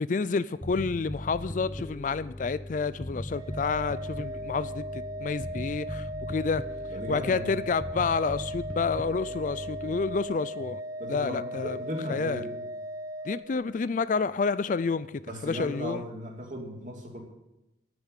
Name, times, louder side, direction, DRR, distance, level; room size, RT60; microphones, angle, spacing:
voice 1, 0.0-6.6 7.1-10.8 11.1-11.8 12.1-12.4 13.2-16.1, left 4 dB, 45° left, 16 dB, 0.4 m, -29 dB
Bass guitar, 0.6-10.2, left 1 dB, 10° left, 0.9 m, -39 dB
Organ, 3.3-14.0, equal, 20° right, 0.8 m, -38 dB
voice 2, 6.9-7.6 11.0-12.6 15.3-17.2, equal, 45° right, 1 dB, 3.0 m, -37 dB
10.5 x 9.4 x 8.2 m, 0.90 s
head